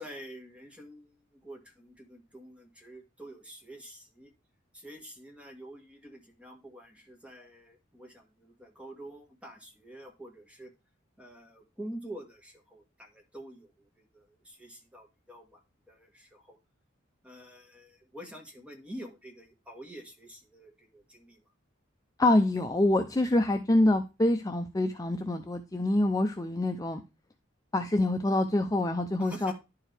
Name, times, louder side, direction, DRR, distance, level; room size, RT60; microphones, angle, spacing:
voice 1, 0.0-4.3 4.7-10.7 11.2-15.6 15.9-16.6 17.2-21.4 26.5-26.6 29.2-29.5, right 1 dB, 5° right, 3 dB, 1.6 m, -47 dB
voice 2, 22.2-27.0 27.7-29.5, left 1 dB, 15° left, 6 dB, 0.5 m, -26 dB
11.0 x 4.6 x 3.3 m, 0.26 s
head